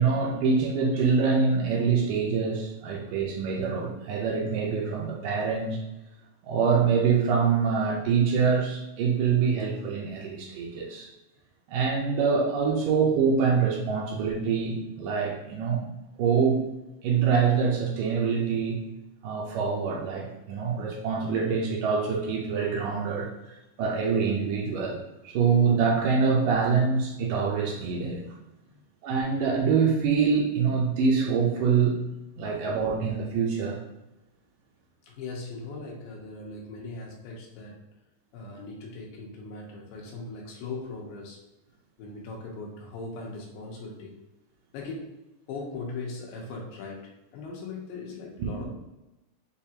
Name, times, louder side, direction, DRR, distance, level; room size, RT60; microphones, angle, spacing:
voice 1, 0.0-5.8 6.4-11.1 11.7-15.8 16.2-16.6 17.0-18.8 19.2-23.3 23.8-28.2 29.0-31.9 32.4-33.8 48.4-48.5, right 5 dB, 75° right, -2 dB, 2.1 m, -25 dB
voice 2, 35.0-37.9 38.3-41.4 42.0-44.2 44.7-45.2 45.5-48.7, left 3 dB, 90° left, -2 dB, 2.6 m, -39 dB
6.7 x 2.4 x 2.8 m, 0.96 s
omnidirectional pair, 4.0 m